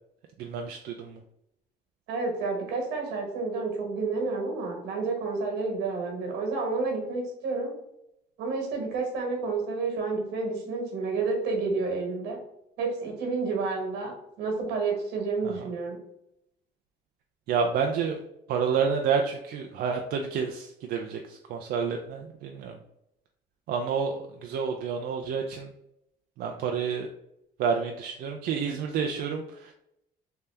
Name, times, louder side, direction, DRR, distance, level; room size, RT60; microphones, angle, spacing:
voice 1, 0.4-1.2 17.5-18.2 18.5-22.8 23.7-24.1 24.4-25.7 26.4-27.1 27.6-29.7, right 6 dB, 70° right, 3 dB, 0.4 m, -29 dB
voice 2, 2.1-7.7 8.4-12.4 12.8-14.1 14.4-16.0, right 4 dB, 85° right, 1 dB, 1.3 m, -30 dB
3.3 x 2.8 x 3.3 m, 0.80 s
cardioid pair, 110°, 17 cm